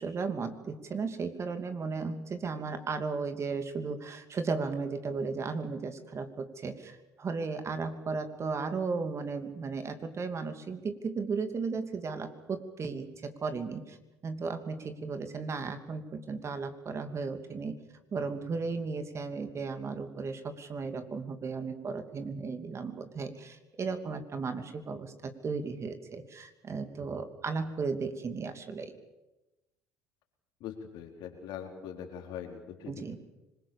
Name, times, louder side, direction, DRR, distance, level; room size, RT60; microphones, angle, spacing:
voice 1, 0.0-14.0 14.2-17.8 18.1-28.9 32.9-33.2, right 4 dB, 35° right, 8 dB, 2.8 m, -35 dB
voice 2, 30.6-32.9, left 8 dB, 65° left, 3 dB, 4.2 m, -42 dB
26.0 x 21.0 x 7.2 m, 1.0 s
hypercardioid pair, 70°, 8 cm